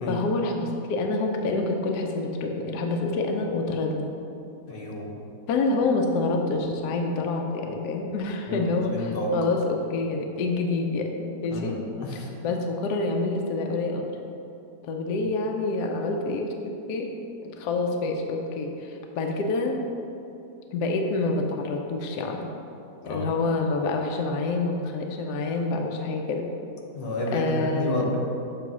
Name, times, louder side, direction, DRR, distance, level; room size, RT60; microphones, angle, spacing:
voice 1, 0.1-4.1 5.5-11.8 12.4-14.1 14.8-17.1 17.4-19.8 20.7-22.4 23.1-26.4 27.3-28.1, left 3 dB, 75° left, 2 dB, 1.1 m, -27 dB
voice 2, 4.7-5.1 8.5-8.6 8.9-9.3 11.5-12.3 23.0-23.2 26.9-28.2, left 1 dB, 90° left, -1 dB, 1.6 m, -30 dB
6.8 x 3.3 x 6.0 m, 2.9 s
omnidirectional pair, 1.8 m